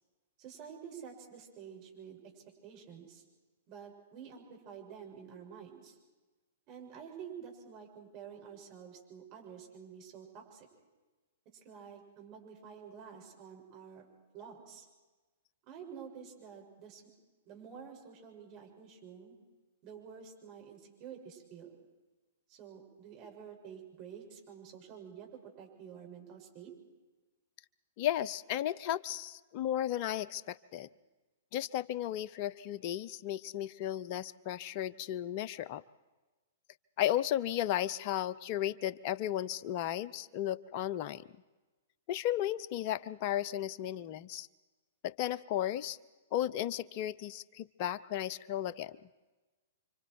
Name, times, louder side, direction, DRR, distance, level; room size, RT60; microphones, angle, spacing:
voice 1, 0.4-2.2 2.6-3.2 3.7-6.0 6.7-10.7 11.6-14.0 14.3-14.8 15.7-17.0 17.4-19.3 19.8-21.7 22.5-26.7, right 7 dB, 35° right, 1 dB, 6.8 m, -49 dB
voice 2, 28.0-30.9 31.5-35.8 37.0-41.3 42.1-44.5 45.0-46.0 46.3-49.0, left 12 dB, 40° left, 18 dB, 0.7 m, -34 dB
29.5 x 25.0 x 4.8 m, 1.2 s
figure-of-eight pair, 110°, 0 cm